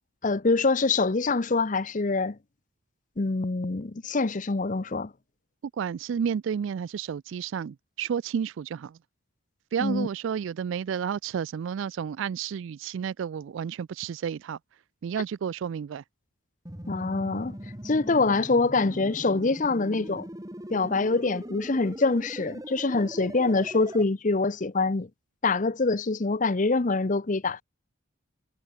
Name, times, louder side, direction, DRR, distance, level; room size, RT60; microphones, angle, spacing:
voice 1, 0.2-2.4 3.2-5.1 9.8-10.1 16.9-17.5 17.8-20.3 20.7-25.1 25.4-27.6, left 3 dB, 40° left, 0.7 m, -25 dB
voice 2, 5.8-9.0 9.7-14.6 15.0-16.0, right 7 dB, 65° right, 0.3 m, -31 dB
sound 1, 16.6-24.0, equal, 15° right, 2.0 m, -40 dB
head